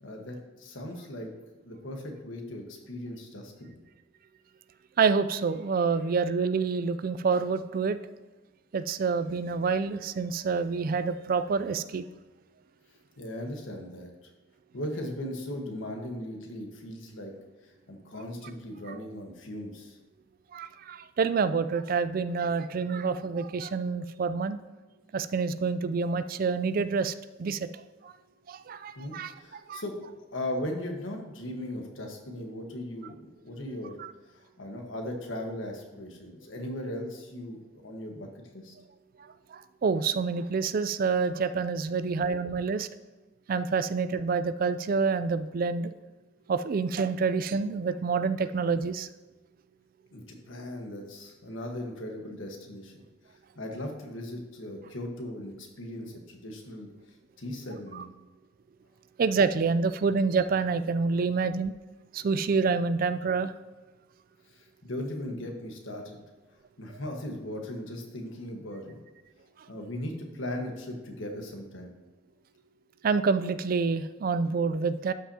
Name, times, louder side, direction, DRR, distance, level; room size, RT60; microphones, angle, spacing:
voice 1, 0.0-1.3 1.6-3.8 13.2-14.3 14.7-17.3 17.6-20.0 29.0-34.0 34.3-38.3 38.5-38.7 50.1-52.9 53.3-56.9 57.4-58.1 64.5-66.2 66.8-69.0 69.7-71.9, left 1 dB, 85° left, 3 dB, 1.4 m, -38 dB
voice 2, 5.0-8.0 8.7-12.0 20.5-24.6 25.1-28.1 28.5-29.3 29.7-29.8 34.0-34.1 39.2-42.9 43.5-45.9 46.5-49.1 57.9-58.0 59.2-61.7 62.1-63.5 73.0-75.1, right 5 dB, 45° right, 13 dB, 0.4 m, -27 dB
12.0 x 5.7 x 2.8 m, 1.2 s
head